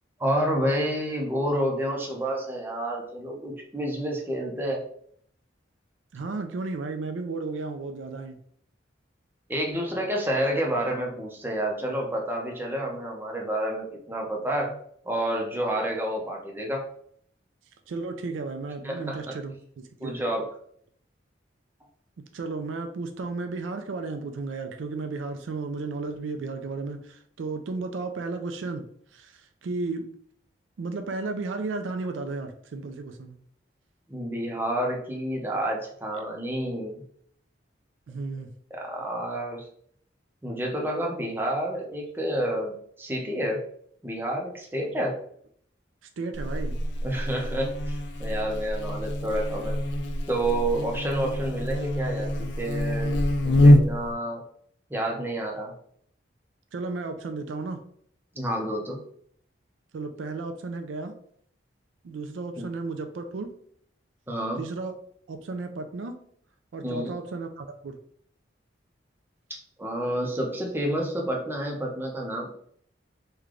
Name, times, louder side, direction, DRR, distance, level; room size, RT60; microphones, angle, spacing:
voice 1, 0.2-4.8 9.5-14.8 15.0-16.8 18.8-19.2 20.0-20.5 34.1-37.0 38.7-39.7 40.4-43.6 44.0-45.2 47.0-49.8 50.3-53.2 53.4-54.4 54.9-55.7 58.3-59.0 62.6-62.7 64.3-64.6 66.8-67.2 69.5-72.5, right 1 dB, 10° right, -1 dB, 0.6 m, -29 dB
voice 2, 6.1-8.4 17.9-20.2 22.3-28.8 29.1-30.1 30.8-33.4 36.1-36.2 38.1-38.5 46.2-46.8 56.7-57.8 59.9-61.1 62.0-63.5 64.6-64.9 65.3-66.1 66.7-68.0, right 3 dB, 85° right, 7 dB, 0.4 m, -34 dB
Buzz, 46.3-54.1, left 1 dB, 65° left, 0.4 m, -24 dB
3.2 x 2.2 x 3.7 m, 0.63 s
head